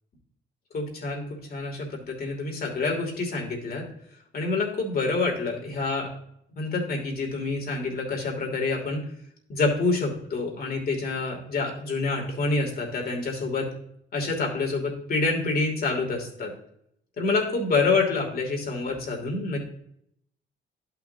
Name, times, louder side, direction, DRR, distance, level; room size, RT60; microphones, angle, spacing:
voice 1, 0.7-3.8 4.3-6.1 6.6-9.0 9.5-13.7 14.1-16.5 17.2-19.7, left 3 dB, 50° left, 0 dB, 2.8 m, -27 dB
11.5 x 5.8 x 2.8 m, 0.71 s
cardioid pair, 90°, 20 cm